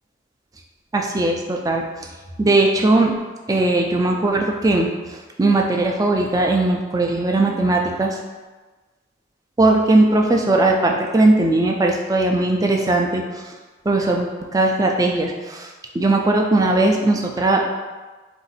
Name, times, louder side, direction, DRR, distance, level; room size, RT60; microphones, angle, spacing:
voice 1, 0.9-2.1 2.4-3.1 3.5-8.2 9.6-13.5 13.9-15.7 15.9-17.7, right 2 dB, 20° right, 1 dB, 0.4 m, -19 dB
4.0 x 2.6 x 4.0 m, 1.3 s
head